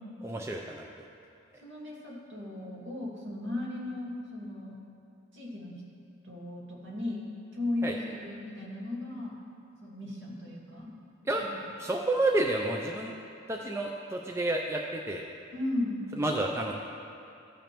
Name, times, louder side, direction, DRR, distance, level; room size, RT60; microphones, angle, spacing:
voice 1, 0.2-0.8 7.8-8.0 11.3-11.4 11.8-13.1 13.5-15.2 16.2-16.7, right 2 dB, 15° right, 0 dB, 0.3 m, -30 dB
voice 2, 1.6-4.8 5.3-5.7 6.2-7.2 7.5-9.4 9.8-10.9 11.4-11.6 15.5-16.0, left 2 dB, 70° right, -5 dB, 2.1 m, -36 dB
15.0 x 5.1 x 3.0 m, 2.5 s
head